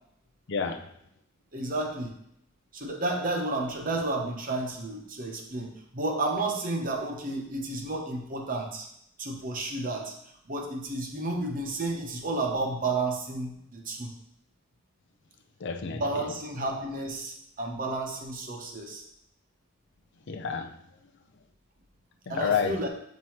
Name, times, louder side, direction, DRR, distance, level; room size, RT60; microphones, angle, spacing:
voice 1, 0.5-0.9 15.6-16.3 20.3-20.8 22.3-22.8, left 6 dB, 60° left, 6 dB, 0.5 m, -29 dB
voice 2, 1.5-2.1 2.7-8.9 9.2-10.1 10.4-14.1 15.9-19.0 22.3-22.9, right 2 dB, 45° right, 2 dB, 1.0 m, -31 dB
7.4 x 3.0 x 4.5 m, 0.73 s
head